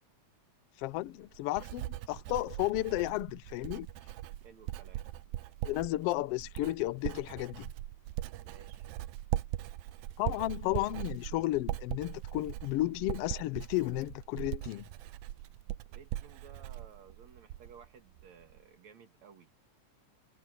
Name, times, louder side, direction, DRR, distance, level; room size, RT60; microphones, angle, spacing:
voice 1, 0.8-3.9 5.6-7.7 10.2-14.9, left 17 dB, 85° left, 1.3 m, -33 dB
Writing, 0.8-17.9 18.2-18.6, right 14 dB, 80° right, 2.1 m, -40 dB
voice 2, 4.4-5.1 8.4-8.9 15.9-19.5, right 7 dB, 60° right, 4.0 m, -56 dB
omnidirectional pair, 3.5 m